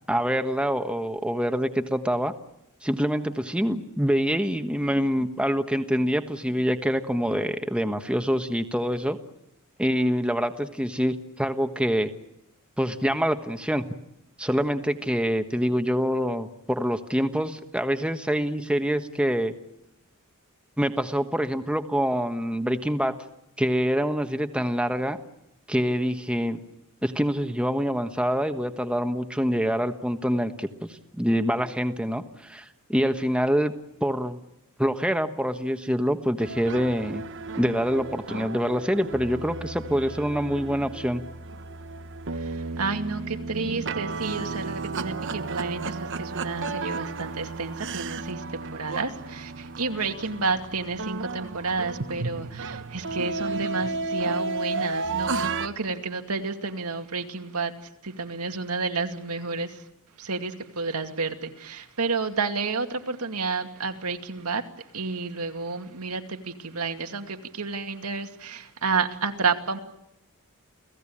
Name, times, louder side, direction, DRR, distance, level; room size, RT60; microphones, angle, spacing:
voice 1, 0.1-2.3 2.8-9.2 9.8-12.1 12.8-13.8 14.4-19.5 20.8-23.1 23.6-25.2 25.7-26.6 27.0-30.9 31.2-33.7 34.0-34.4 34.8-37.2 37.6-41.2, equal, 5° right, 7 dB, 1.3 m, -25 dB
sound 1, 36.4-55.7, right 3 dB, 55° right, 1.2 m, -33 dB
voice 2, 42.3-57.7 58.0-59.8 60.2-64.6 64.9-69.8, right 4 dB, 85° right, 6 dB, 2.4 m, -30 dB
29.5 x 17.5 x 8.7 m, 0.84 s
head